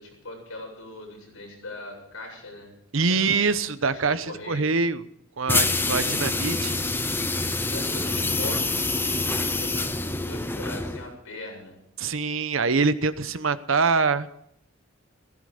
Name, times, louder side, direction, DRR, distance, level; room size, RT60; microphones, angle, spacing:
voice 1, 0.0-2.7 3.0-3.4 3.8-4.7 6.0-6.2 7.7-11.8, left 2 dB, 90° left, 0 dB, 7.7 m, -40 dB
voice 2, 2.9-5.0 5.4-6.8 12.0-14.3, right 4 dB, 70° right, 13 dB, 0.9 m, -24 dB
sound 1, 5.5-11.1, left 3 dB, 10° left, 0.6 m, -26 dB
15.5 x 15.5 x 5.2 m, 0.73 s
head